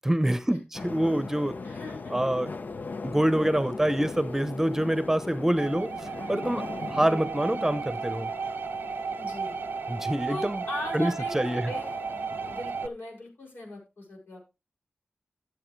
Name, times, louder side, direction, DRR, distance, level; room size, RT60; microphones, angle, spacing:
voice 1, 0.0-1.6 2.1-2.5 3.0-8.3 9.9-10.6 10.9-11.7, right 1 dB, 10° right, 0.9 m, -26 dB
sound 1, 0.7-12.9, left 4 dB, 60° left, 0.6 m, -39 dB
voice 2, 1.6-2.2 7.0-7.3 9.1-9.6 10.3-11.9 12.5-14.5, left 1 dB, 80° left, 6.6 m, -39 dB
sound 2, 5.6-12.9, right 6 dB, 90° right, 0.6 m, -34 dB
14.0 x 8.1 x 3.3 m
wide cardioid pair, 75°, 3 cm